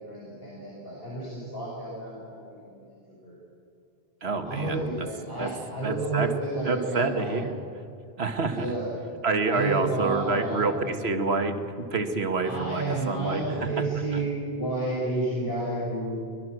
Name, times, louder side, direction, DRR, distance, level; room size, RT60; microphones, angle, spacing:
voice 1, 0.0-3.4 4.4-7.4 8.5-8.9 9.4-10.9 12.4-16.1, right 2 dB, 65° left, -6 dB, 6.0 m, -31 dB
voice 2, 4.2-5.1 5.4-5.5 5.8-6.3 6.7-7.6 8.2-8.7 9.2-13.8 14.1-14.2, right 3 dB, 80° right, 7 dB, 1.8 m, -28 dB
24.5 x 20.5 x 6.3 m, 2.5 s
omnidirectional pair, 1.1 m